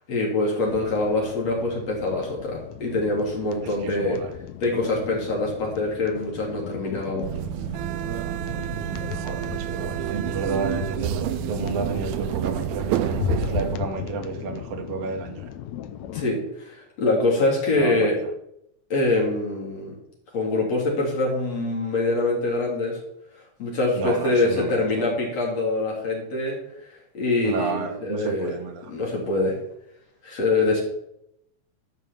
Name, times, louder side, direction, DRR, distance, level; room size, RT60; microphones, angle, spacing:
voice 1, 0.1-4.2 4.6-7.3 16.1-18.2 18.9-20.0 20.3-23.0 23.6-26.6 27.1-28.6 28.9-29.6 30.2-30.8, left 2 dB, 55° left, -2 dB, 4.2 m, -24 dB
sound 1, 0.6-16.2, left 10 dB, 75° left, 1.9 m, -36 dB
voice 2, 3.6-4.3 9.1-15.5 17.8-18.3 24.0-25.1 27.4-28.9, right 4 dB, 60° right, 5 dB, 2.1 m, -31 dB
sound 2, 7.2-13.8, right 14 dB, 80° right, 1.7 m, -29 dB
13.0 x 5.4 x 7.1 m, 0.79 s
omnidirectional pair, 3.5 m